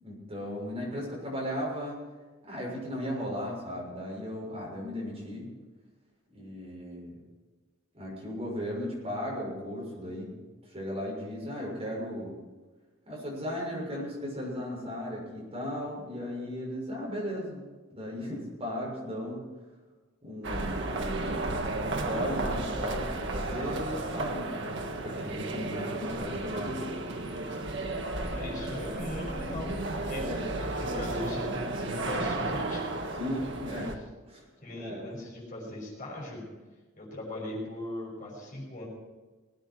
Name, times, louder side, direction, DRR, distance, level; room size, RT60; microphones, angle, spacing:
voice 1, 0.0-2.0 2.5-5.5 6.3-7.2 7.9-10.3 10.6-12.4 13.1-17.6 17.9-19.4 20.2-20.8 21.1-21.4 21.8-24.6 24.9-26.8 30.0-30.4 33.2-33.9 34.3-34.5 34.7-35.1, equal, 30° right, -4 dB, 6.4 m, -36 dB
sound 1, 20.4-33.9, right 2 dB, 60° right, 1.6 m, -33 dB
voice 2, 28.1-30.2 30.6-32.9 34.6-36.4 37.0-38.9, left 1 dB, 40° left, -3 dB, 6.1 m, -39 dB
20.5 x 9.2 x 6.1 m, 1.3 s
head